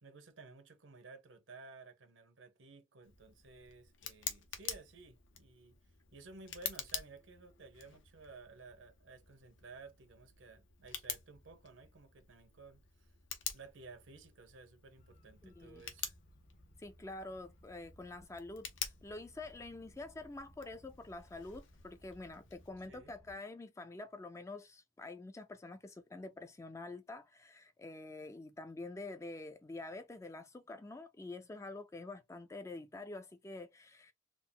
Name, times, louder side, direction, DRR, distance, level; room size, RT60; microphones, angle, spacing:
voice 1, 0.0-5.8 6.1-13.1 13.5-16.1 22.9-23.2, right 4 dB, 80° right, 0.9 m, -55 dB
Tick, 3.0-22.7, left 8 dB, 80° left, 0.8 m, -48 dB
sound 1, 15.0-23.3, left 1 dB, 50° left, 1.0 m, -63 dB
voice 2, 15.4-15.8 16.8-18.7 19.0-34.1, left 2 dB, 15° left, 0.3 m, -47 dB
3.7 x 2.0 x 3.8 m
head